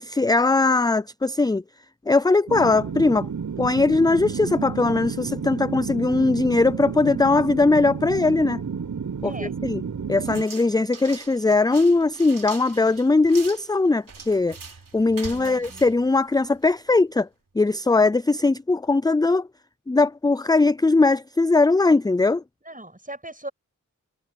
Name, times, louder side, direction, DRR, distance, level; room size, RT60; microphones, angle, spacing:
voice 1, 0.0-1.6 2.1-3.3 3.6-8.6 9.2-9.8 10.1-14.6 14.9-17.3 17.6-19.5 19.9-22.4, left 3 dB, 10° left, 0.4 m, -20 dB
sound 1, 2.5-10.4, right 6 dB, 65° right, 0.9 m, -31 dB
sound 2, 10.2-16.8, right 4 dB, 90° right, 3.2 m, -42 dB
voice 2, 15.2-16.0 22.7-23.5, right 1 dB, 25° right, 7.8 m, -39 dB
cardioid pair, 40°, 32 cm